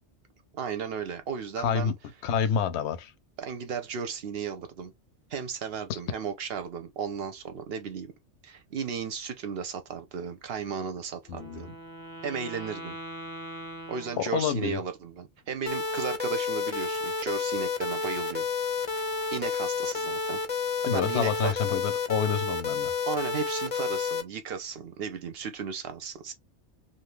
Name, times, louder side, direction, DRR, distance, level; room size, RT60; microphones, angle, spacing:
voice 1, 0.5-1.9 3.4-4.9 5.3-8.1 8.4-11.7 12.2-13.0 13.9-18.5 19.3-20.4 20.9-21.5 23.1-26.3, right 6 dB, 65° right, 0.7 m, -35 dB
voice 2, 1.6-1.9 2.2-3.1 11.3-11.6 14.2-14.8 20.9-22.9, left 7 dB, 70° left, 0.9 m, -28 dB
Wind instrument woodwind instrument, 11.2-14.9, right 1 dB, 20° right, 0.8 m, -42 dB
sound 1, 15.7-24.2, left 5 dB, 40° left, 0.5 m, -30 dB
2.6 x 2.4 x 3.2 m
omnidirectional pair, 1.2 m